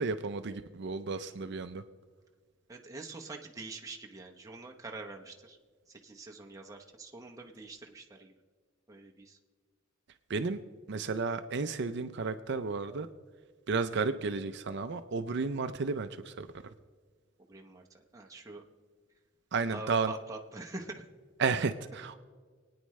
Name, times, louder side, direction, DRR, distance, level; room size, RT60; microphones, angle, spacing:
voice 1, 0.0-1.8 10.3-10.6 10.9-13.1 13.7-16.5 19.5-20.1 21.4-22.2, right 4 dB, 60° right, 9 dB, 0.5 m, -32 dB
voice 2, 2.7-5.6 5.9-8.4 8.9-9.4 17.5-18.6 19.7-21.1, right 3 dB, 15° right, 1 dB, 0.9 m, -45 dB
28.5 x 9.6 x 3.2 m, 1.5 s
head